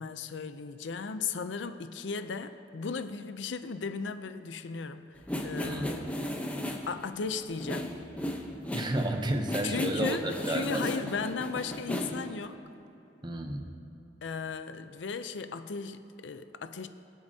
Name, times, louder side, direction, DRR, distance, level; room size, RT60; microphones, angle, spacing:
voice 1, 0.0-6.0 6.9-7.9 9.6-12.6 14.2-16.9, left 5 dB, 80° left, 10 dB, 0.5 m, -36 dB
sound 1, 5.2-12.3, equal, 10° left, 0.8 m, -35 dB
voice 2, 5.6-5.9 8.7-10.8 13.2-13.7, right 1 dB, 25° right, 5 dB, 0.8 m, -32 dB
23.0 x 8.1 x 2.8 m, 2.9 s
head